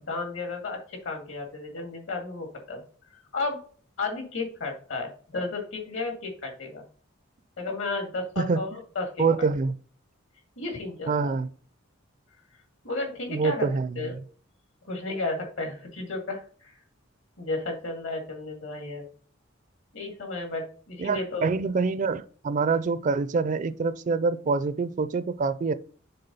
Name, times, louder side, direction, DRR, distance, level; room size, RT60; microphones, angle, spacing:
voice 1, 0.0-2.8 3.3-3.6 4.0-6.8 7.6-9.5 10.6-11.3 12.8-13.7 14.0-14.1 14.8-16.7 17.4-19.0 19.9-21.5, left 3 dB, 70° left, 2.2 m, -33 dB
voice 2, 9.2-9.7 11.1-11.5 13.3-14.1 21.0-25.7, right 4 dB, 40° right, 0.4 m, -26 dB
6.8 x 3.8 x 5.4 m
head